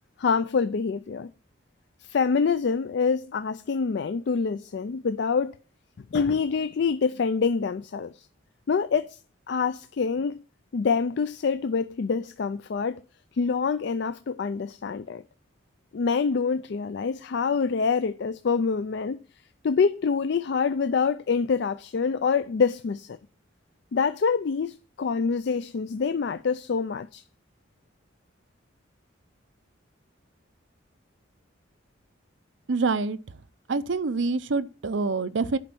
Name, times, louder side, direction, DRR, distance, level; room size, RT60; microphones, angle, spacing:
voice 1, 0.2-1.3 2.0-5.5 6.1-8.3 8.7-9.2 9.5-10.4 10.7-13.0 13.3-15.2 15.9-19.2 19.6-23.2 23.9-27.2, left 5 dB, 55° left, 0.4 m, -26 dB
voice 2, 32.7-33.2 33.7-35.6, right 4 dB, 65° right, 0.6 m, -26 dB
10.5 x 5.2 x 6.0 m
head